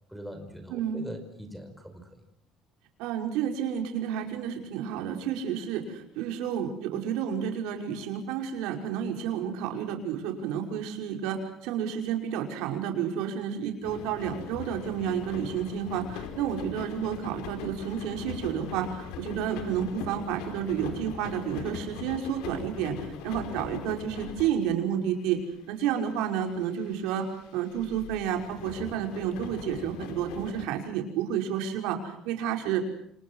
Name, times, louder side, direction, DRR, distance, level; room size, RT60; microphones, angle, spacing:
voice 1, 0.1-2.1, equal, ahead, 5 dB, 5.2 m, -42 dB
voice 2, 0.7-1.1 3.0-25.4 25.7-27.3 27.5-32.8, right 9 dB, 80° right, 3 dB, 5.4 m, -31 dB
sound 1, 13.8-25.0 25.4-25.5 25.9-30.7, left 7 dB, 85° left, 5.1 m, -41 dB
29.5 x 27.0 x 6.4 m, 0.67 s
cardioid pair, 135°, 0 cm